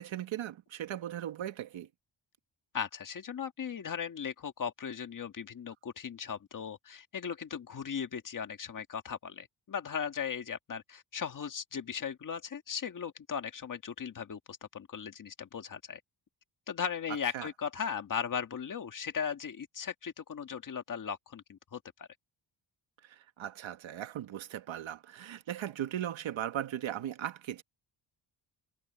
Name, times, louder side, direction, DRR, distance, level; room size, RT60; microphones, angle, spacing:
voice 1, 0.0-1.9 17.3-17.5 23.0-27.6, right 11 dB, 80° right, 1.5 m, -38 dB
voice 2, 2.7-16.0 16.7-22.1, left 7 dB, 40° left, 1.8 m, -37 dB
wide cardioid pair, 170°, 46 cm